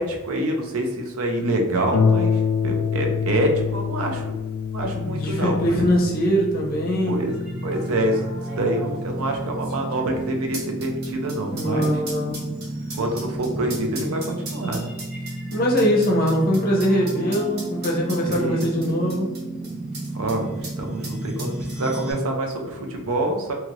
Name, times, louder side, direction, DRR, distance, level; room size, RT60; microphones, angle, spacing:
voice 1, 0.0-4.4 4.7-5.8 7.1-7.3 7.6-12.0 12.9-14.9 18.2-18.7 20.1-23.5, right 1 dB, 70° right, 2 dB, 0.5 m, -26 dB
Harp, 1.9-11.1 11.9-12.0 12.5-12.6, left 6 dB, 90° left, 0.3 m, -27 dB
voice 2, 4.9-7.2 11.5-12.4 15.5-19.3, equal, 40° left, -1 dB, 0.7 m, -22 dB
sound 1, 5.1-5.2 5.5-5.9 6.6-6.8 7.7-20.4 20.6-20.8 21.0-22.2 22.5-22.6, right 2 dB, 45° right, 0.8 m, -39 dB
sound 2, 7.3-22.1, right 1 dB, 5° right, 0.3 m, -32 dB
2.8 x 2.5 x 3.0 m, 1.1 s
head